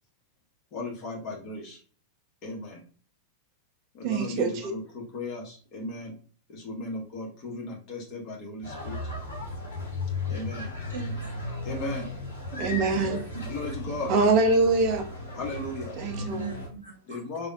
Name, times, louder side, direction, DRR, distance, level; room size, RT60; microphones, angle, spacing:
voice 1, 0.7-1.8 2.4-2.8 3.9-6.1 6.5-9.0 10.3-10.7 11.6-12.1 13.5-14.1 15.3-16.0 17.1-17.5, left 2 dB, 40° left, 0.9 m, -36 dB
voice 2, 4.0-4.5 12.6-13.2 14.1-15.0 16.0-16.5, right 3 dB, 40° right, 0.5 m, -23 dB
sound 1, 8.6-16.7, left 2 dB, 70° left, 0.8 m, -35 dB
voice 3, 10.9-11.7 13.0-13.8 16.2-17.2, right 4 dB, 70° right, 0.7 m, -40 dB
3.4 x 2.1 x 2.5 m
figure-of-eight pair, 90°, 0 cm